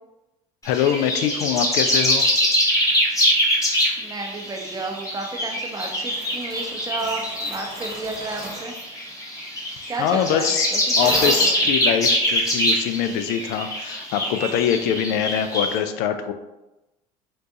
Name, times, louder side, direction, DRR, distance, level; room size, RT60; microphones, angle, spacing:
voice 1, 0.6-2.3 9.9-16.3, left 9 dB, 65° left, 8 dB, 0.4 m, -23 dB
sound 1, 0.6-15.8, equal, 20° left, 1.0 m, -23 dB
voice 2, 4.0-8.7 9.9-11.6, right 2 dB, 20° right, 2 dB, 0.7 m, -32 dB
sound 2, 5.8-8.8 11.0-11.5, right 2 dB, 40° right, 1.0 m, -35 dB
3.7 x 2.4 x 2.7 m, 0.98 s
hypercardioid pair, 75°, 18 cm